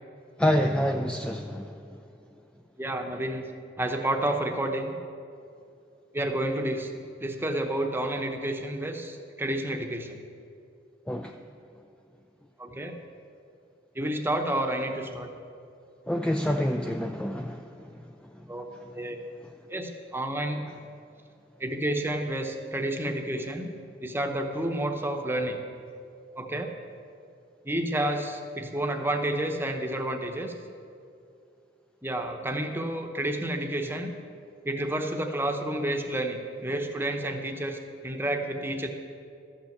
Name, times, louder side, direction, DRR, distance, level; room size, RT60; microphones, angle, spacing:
voice 1, 0.4-1.7 11.1-11.3 16.1-17.6, equal, 5° left, 0.3 m, -26 dB
voice 2, 2.8-3.5 3.8-4.9 6.1-6.9 7.2-10.2 12.6-13.0 13.9-15.3 18.5-18.7 18.9-19.2 19.7-20.7 21.6-23.7 24.0-25.6 26.4-26.7 27.6-30.5 32.0-34.1 34.6-38.9, right 1 dB, 15° right, 0.9 m, -30 dB
13.0 x 5.9 x 7.8 m
head